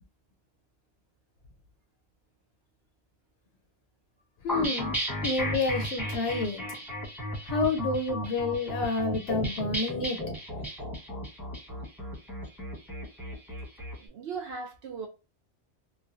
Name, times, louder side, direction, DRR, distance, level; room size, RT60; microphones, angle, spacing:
voice 1, 4.4-4.9 5.2-6.6 7.5-10.2, left 3 dB, 70° left, 0.9 m, -29 dB
sound 1, 4.5-13.9, equal, ahead, 1.0 m, -34 dB
voice 2, 14.0-15.1, right 5 dB, 65° right, 0.8 m, -38 dB
3.1 x 2.2 x 2.5 m
omnidirectional pair, 1.3 m